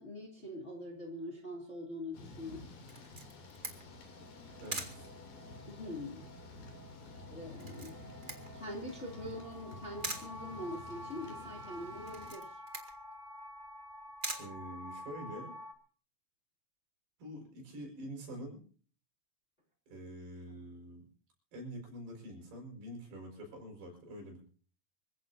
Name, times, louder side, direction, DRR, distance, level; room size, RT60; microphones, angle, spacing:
voice 1, 0.0-2.7 5.7-6.3 7.3-8.0 8.5-12.6, left 1 dB, 20° left, 0 dB, 2.7 m, -44 dB
Thunder / Rain, 2.1-12.3, left 2 dB, 70° left, 4.7 m, -51 dB
Camera, 2.9-15.4, right 2 dB, 30° right, 0.9 m, -46 dB
sound 1, 3.4-15.7, equal, 60° right, 1.0 m, -50 dB
voice 2, 4.6-5.1 14.4-15.5 17.2-18.6 19.9-21.1 21.5-24.4, equal, 80° right, 2 dB, 7.1 m, -46 dB
26.0 x 16.0 x 2.7 m, 0.43 s
omnidirectional pair, 4.5 m